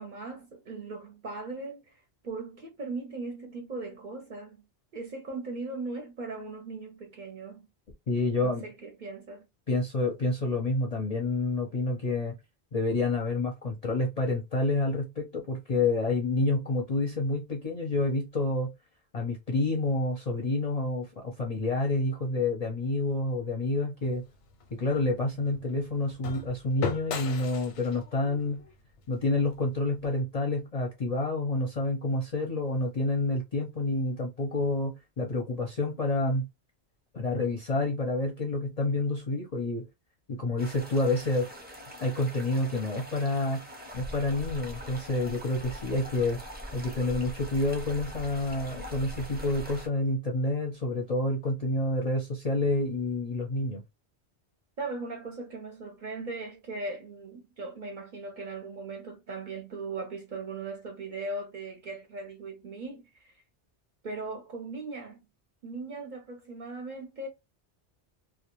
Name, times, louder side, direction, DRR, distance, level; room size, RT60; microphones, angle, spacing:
voice 1, 0.0-4.6 4.9-7.7 8.4-9.5 54.8-63.4 64.0-65.2 65.6-67.3, right 3 dB, 50° right, 0.6 m, -39 dB
voice 2, 8.1-8.6 9.7-12.3 12.7-18.7 19.1-24.2 24.7-28.6 29.1-36.4 37.1-39.8 40.4-41.5 42.0-43.6 43.9-46.4 46.7-53.8, left 2 dB, 45° left, 0.5 m, -28 dB
sound 1, 24.0-30.2, left 5 dB, 90° left, 0.9 m, -39 dB
sound 2, 40.6-49.9, equal, 15° right, 0.4 m, -42 dB
2.2 x 2.1 x 2.9 m
omnidirectional pair, 1.1 m